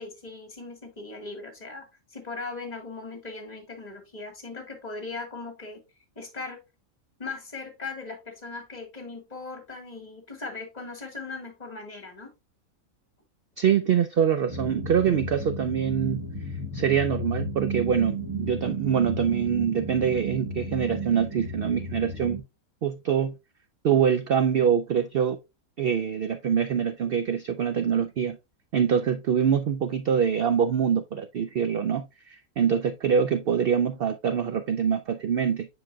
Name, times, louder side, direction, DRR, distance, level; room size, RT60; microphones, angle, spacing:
voice 1, 0.0-1.8 2.1-5.8 6.1-6.6 7.2-12.3, left 3 dB, 30° left, 1.6 m, -39 dB
voice 2, 13.6-16.2 16.7-22.4 22.8-23.3 23.8-25.4 25.8-28.4 28.7-35.7, right 8 dB, 70° right, 0.5 m, -24 dB
sound 1, 14.5-22.4, right 2 dB, 25° right, 1.3 m, -33 dB
7.5 x 5.8 x 2.3 m
omnidirectional pair, 1.5 m